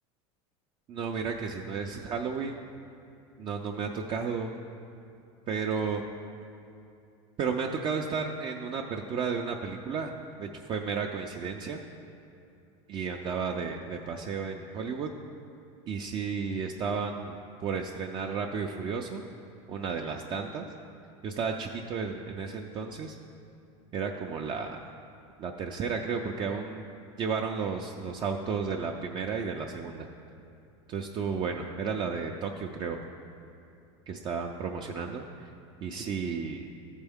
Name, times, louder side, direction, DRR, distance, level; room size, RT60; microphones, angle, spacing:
voice 1, 0.9-2.6 3.4-4.5 5.5-6.0 7.4-10.1 10.4-11.8 12.9-15.1 15.9-19.2 19.7-20.7 21.2-23.2 23.9-24.8 25.4-26.9 27.2-30.1 30.9-33.0 34.1-35.2 35.8-36.6, right 5 dB, 30° right, 2 dB, 0.4 m, -33 dB
13.0 x 4.4 x 3.5 m, 2.7 s
supercardioid pair, 125°, 15 cm